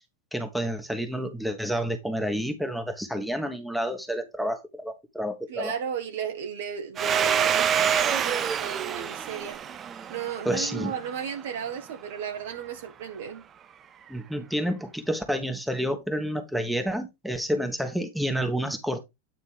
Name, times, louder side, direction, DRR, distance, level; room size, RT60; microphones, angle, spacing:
voice 1, 0.3-5.8 10.4-10.9 14.1-19.0, equal, ahead, 1.1 m, -29 dB
voice 2, 5.5-9.6 10.1-13.4, right 7 dB, 55° right, 1.3 m, -34 dB
Domestic sounds home sounds, 7.0-11.4, right 8 dB, 25° right, 0.4 m, -27 dB
9.0 x 3.2 x 4.7 m
figure-of-eight pair, 90°, 0 cm